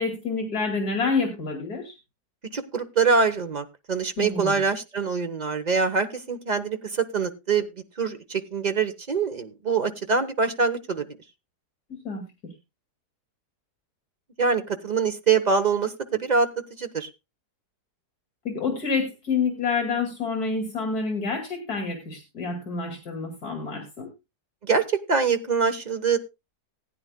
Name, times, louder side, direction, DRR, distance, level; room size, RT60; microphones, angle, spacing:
voice 1, 0.0-1.9 4.2-4.6 11.9-12.5 18.4-24.1, left 4 dB, 70° left, 3 dB, 2.8 m, -28 dB
voice 2, 2.5-7.7 8.0-11.1 14.4-17.1 24.6-26.2, right 5 dB, 30° right, 7 dB, 0.9 m, -24 dB
19.0 x 9.7 x 2.2 m, 0.24 s
omnidirectional pair, 1.7 m